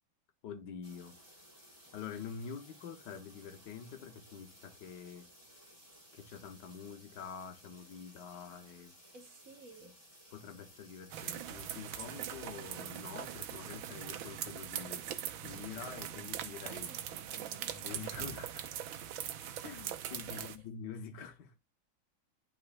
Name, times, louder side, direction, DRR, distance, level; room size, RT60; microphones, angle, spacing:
voice 1, 0.4-1.2 1.9-5.3 6.1-9.0 9.8-9.9 10.3-16.9 17.7-18.7 19.6-21.5, left 7 dB, 65° left, 1.4 m, -46 dB
sound 1, 0.8-12.8, equal, 10° left, 2.6 m, -59 dB
voice 2, 9.1-10.0 16.7-17.9 20.3-20.5, right 4 dB, 50° right, 1.1 m, -54 dB
sound 2, 11.1-20.6, right 10 dB, 75° right, 1.5 m, -41 dB
11.0 x 4.3 x 2.2 m
omnidirectional pair, 2.3 m